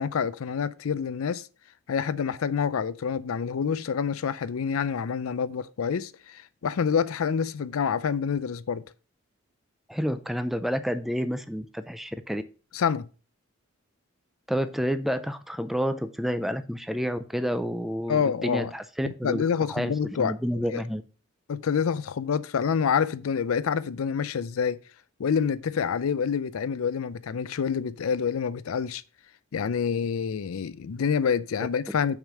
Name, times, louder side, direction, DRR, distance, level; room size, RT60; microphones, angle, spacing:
voice 1, 0.0-1.5 1.9-8.8 12.7-13.1 18.1-18.7 19.0-20.3 20.7-20.8 21.5-24.8 25.2-29.0 29.5-32.2, left 6 dB, 90° left, 0.4 m, -27 dB
voice 2, 9.9-12.4 14.5-19.4 19.7-21.0, equal, ahead, 0.4 m, -29 dB
6.4 x 5.0 x 6.2 m
head